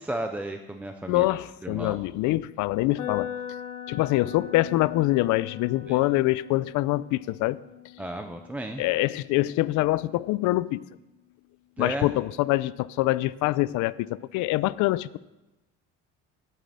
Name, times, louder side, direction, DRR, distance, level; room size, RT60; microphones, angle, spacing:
voice 1, 0.0-1.3 1.6-2.0 5.9-6.0 8.0-8.8 11.8-12.1, right 1 dB, 5° right, 0.4 m, -33 dB
voice 2, 1.1-3.3 3.9-7.6 8.8-10.8 11.8-15.2, left 18 dB, 75° left, 0.5 m, -25 dB
sound 1, 3.0-10.9, left 10 dB, 55° left, 1.8 m, -41 dB
9.1 x 7.5 x 8.6 m
cardioid pair, 180°, 31 cm